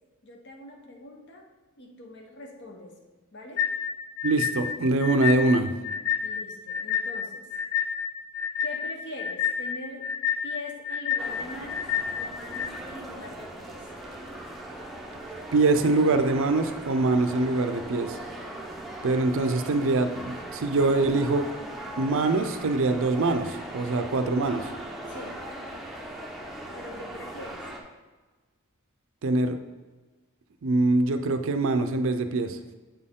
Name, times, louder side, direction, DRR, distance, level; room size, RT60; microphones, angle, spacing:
voice 1, 0.2-1.5 1.8-3.0 3.3-3.7 6.2-7.5 8.6-10.1 10.4-13.9 25.1-25.4 26.7-27.6, left 2 dB, 55° left, 2 dB, 1.0 m, -42 dB
sound 1, 3.6-12.7, left 8 dB, 75° left, 0.6 m, -29 dB
voice 2, 4.2-5.7 15.5-18.2 19.0-21.5 22.0-24.7 29.2-29.6 30.6-32.6, right 2 dB, 60° right, 8 dB, 0.5 m, -24 dB
sound 2, 11.2-27.8, right 1 dB, ahead, 0.6 m, -39 dB
7.9 x 4.2 x 3.7 m, 1.3 s
head